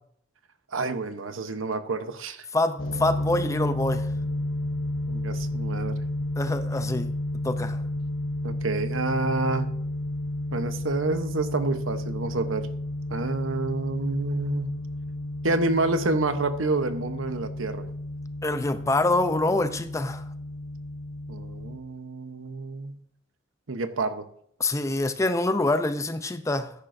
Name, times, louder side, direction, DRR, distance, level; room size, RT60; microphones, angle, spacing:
voice 1, 0.7-2.4 5.1-6.0 8.4-9.7 10.5-12.7 13.1-14.7 15.4-17.9 21.3-23.0 23.7-24.3, right 3 dB, 85° right, 0.9 m, -28 dB
voice 2, 2.5-4.1 6.4-7.1 7.4-7.8 18.4-20.2 24.6-26.7, left 2 dB, 15° left, 0.5 m, -25 dB
sound 1, 2.8-21.8, left 1 dB, 85° left, 1.1 m, -32 dB
13.5 x 10.5 x 2.6 m
head